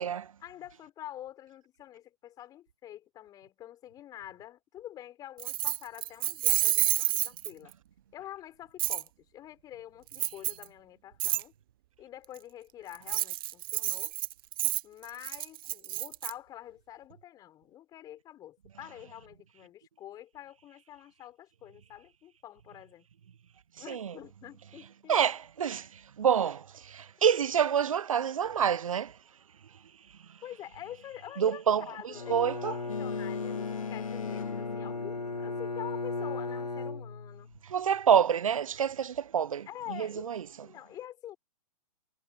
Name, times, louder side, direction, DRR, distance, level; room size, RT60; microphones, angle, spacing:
voice 1, 0.4-7.7 8.1-11.5 12.0-14.1 14.8-23.1 23.8-25.2 30.4-37.5 39.7-40.2 40.6-41.4, left 12 dB, 20° left, 5.7 m, -46 dB
Keys jangling, 5.4-7.7 8.8-9.0 10.1-10.6 11.2-11.4 12.9-16.3, right 16 dB, 35° right, 1.1 m, -29 dB
voice 2, 25.1-29.1 31.4-32.7 37.6-40.4, right 8 dB, 55° right, 0.9 m, -27 dB
Bowed string instrument, 32.1-37.6, left 3 dB, 80° left, 1.3 m, -36 dB
Boat Water vehicle, 32.9-36.0, left 7 dB, 55° left, 2.4 m, -40 dB
figure-of-eight pair, 125°, 20 cm